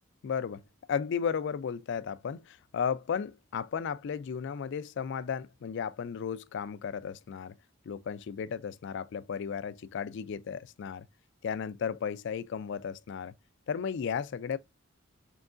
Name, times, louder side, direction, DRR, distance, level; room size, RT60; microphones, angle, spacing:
voice 1, 0.2-0.6 0.9-7.5 7.9-11.1 11.4-13.3 13.7-14.6, left 7 dB, 60° left, 0.3 m, -34 dB
4.4 x 3.1 x 2.5 m
head